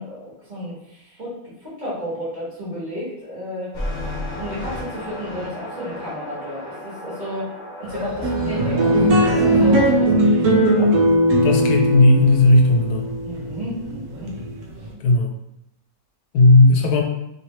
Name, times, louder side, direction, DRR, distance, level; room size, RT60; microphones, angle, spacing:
voice 1, 0.0-3.7 4.4-7.5 7.8-10.9 13.2-14.3 14.8-14.9, equal, 35° right, -8 dB, 1.3 m, -32 dB
sound 1, 3.7-9.8, left 1 dB, 50° left, 1.0 m, -32 dB
sound 2, 8.2-14.9, right 1 dB, 85° right, 1.1 m, -18 dB
voice 2, 11.4-13.1 15.0-15.3 16.3-17.0, left 2 dB, 85° left, 2 dB, 1.1 m, -14 dB
3.0 x 2.9 x 2.9 m, 0.85 s
omnidirectional pair, 1.6 m